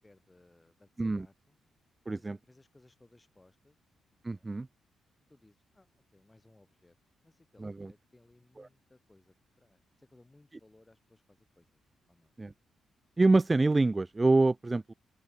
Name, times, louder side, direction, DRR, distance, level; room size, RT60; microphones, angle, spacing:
voice 1, 0.0-1.6 2.1-3.8 4.3-4.6 5.3-7.0 7.2-11.8 12.1-12.3, left 2 dB, 15° left, 2.5 m, -63 dB
voice 2, 2.1-2.4 4.2-4.7 7.6-7.9 8.6-8.7 12.4-12.5 13.2-14.9, right 2 dB, 15° right, 0.3 m, -26 dB
open air
cardioid pair, 135°, 0 cm